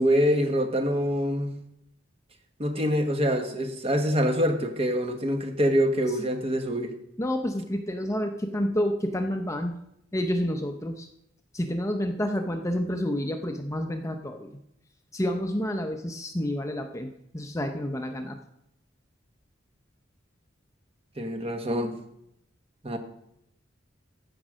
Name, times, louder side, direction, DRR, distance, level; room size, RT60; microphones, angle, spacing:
voice 1, 0.0-1.5 2.6-6.9 21.2-21.9 22.8-23.0, equal, 30° right, 5 dB, 1.3 m, -25 dB
voice 2, 7.2-9.7 10.1-11.1 11.5-14.6 15.1-18.4, equal, 15° left, 5 dB, 0.7 m, -29 dB
15.0 x 5.3 x 6.2 m, 0.79 s
head